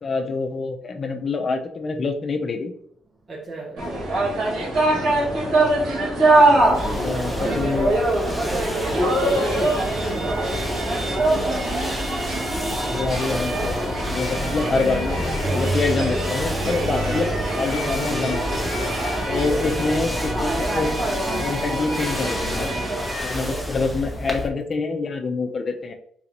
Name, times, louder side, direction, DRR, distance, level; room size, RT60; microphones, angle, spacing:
voice 1, 0.0-2.7 4.9-5.0 6.9-7.9 9.6-9.7 12.8-18.6 19.2-20.9 21.4-22.9 23.2-25.9, left 4 dB, 40° left, 4 dB, 0.6 m, -26 dB
voice 2, 3.3-4.0 7.1-7.9 8.4-10.5 10.9-11.4 19.8-20.0 23.5-23.9, right 3 dB, 45° right, -2 dB, 0.8 m, -34 dB
sound 1, 3.8-23.6, right 2 dB, 80° right, 1.9 m, -23 dB
sound 2, 6.6-24.5, left 1 dB, 5° left, 0.8 m, -31 dB
4.0 x 3.8 x 2.9 m, 0.65 s
cardioid pair, 90°, 0 cm